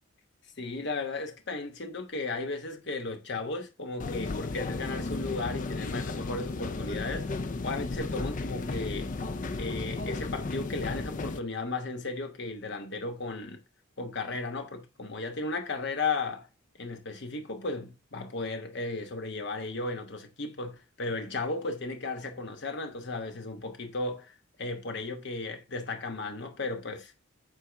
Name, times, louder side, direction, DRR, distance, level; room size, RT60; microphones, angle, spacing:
voice 1, 0.6-7.3 7.6-9.1 9.6-13.6 14.0-16.5 16.8-27.1, left 3 dB, 55° left, 1.1 m, -35 dB
sound 1, 4.0-11.4, left 3 dB, 40° left, 0.5 m, -34 dB
8.2 x 3.8 x 3.3 m
head